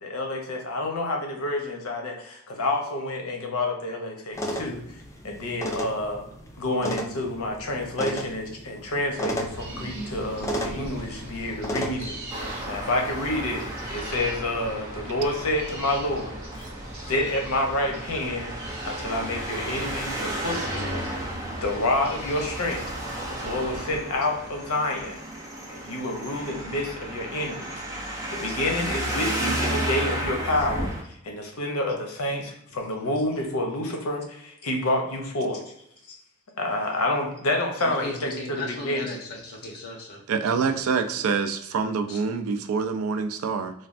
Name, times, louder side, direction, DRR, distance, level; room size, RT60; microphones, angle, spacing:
voice 1, 0.0-5.0 5.2-6.3 6.6-12.2 12.7-16.4 17.1-21.0 21.6-22.8 23.3-25.2 25.7-27.7 28.3-35.6 36.1-36.2 36.6-39.2, left 1 dB, 80° left, 2 dB, 0.7 m, -28 dB
sound 1, 4.3-11.9, equal, 15° left, 0.3 m, -34 dB
sound 2, 9.4-24.0, right 1 dB, 45° right, 0.9 m, -40 dB
Traffic noise roadway noise, 12.3-31.0, right 1 dB, 15° right, 0.7 m, -33 dB
voice 2, 37.8-40.2 40.5-40.8 42.1-42.2, left 2 dB, 50° left, -1 dB, 0.9 m, -37 dB
voice 3, 40.3-43.7, right 5 dB, 75° right, 8 dB, 0.3 m, -26 dB
3.2 x 2.2 x 2.5 m, 0.76 s
head